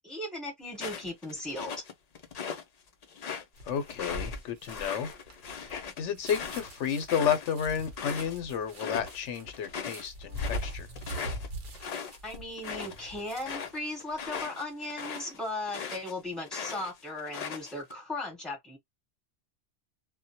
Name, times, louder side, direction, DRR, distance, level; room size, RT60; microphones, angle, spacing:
voice 1, 0.0-1.8 12.2-18.8, left 2 dB, ahead, 1.0 m, -37 dB
sound 1, 0.7-2.6 3.0-8.4 8.7-9.2 9.5-16.1 16.5-17.9, left 6 dB, 55° left, 0.4 m, -39 dB
sound 2, 3.6-13.7 14.1-14.4, equal, 50° right, 0.8 m, -41 dB
voice 2, 3.7-5.1 5.6-10.9, left 7 dB, 80° left, 0.9 m, -31 dB
2.2 x 2.1 x 2.7 m
omnidirectional pair, 1.2 m